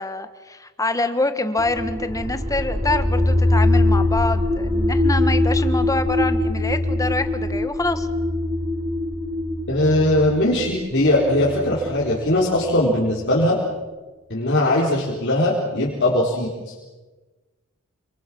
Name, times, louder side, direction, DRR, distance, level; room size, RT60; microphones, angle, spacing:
voice 1, 0.0-8.1, left 2 dB, 15° left, 9 dB, 1.6 m, -25 dB
sound 1, 1.6-13.4, left 1 dB, 25° right, 6.5 m, -23 dB
voice 2, 9.7-13.6 14.3-16.9, left 1 dB, 55° left, -4 dB, 4.4 m, -20 dB
29.5 x 27.0 x 6.2 m, 1.3 s
head